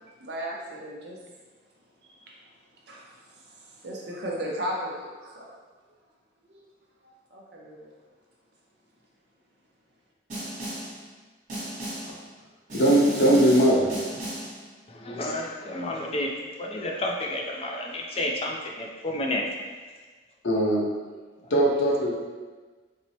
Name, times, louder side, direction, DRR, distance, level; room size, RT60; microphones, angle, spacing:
voice 1, 0.2-1.2 2.0-2.4 2.9-5.5 6.5-6.7 7.0-7.9, equal, 65° right, -3 dB, 0.6 m, -36 dB
Snare drum, 10.3-11.0 11.5-12.2 12.7-14.6, right 1 dB, 40° right, 1.1 m, -34 dB
voice 2, 12.7-13.9 20.4-20.9 21.5-22.1, right 1 dB, 80° left, -3 dB, 0.7 m, -20 dB
voice 3, 14.9-19.5, left 1 dB, 30° left, 1 dB, 0.3 m, -31 dB
4.4 x 2.0 x 2.7 m, 1.3 s
head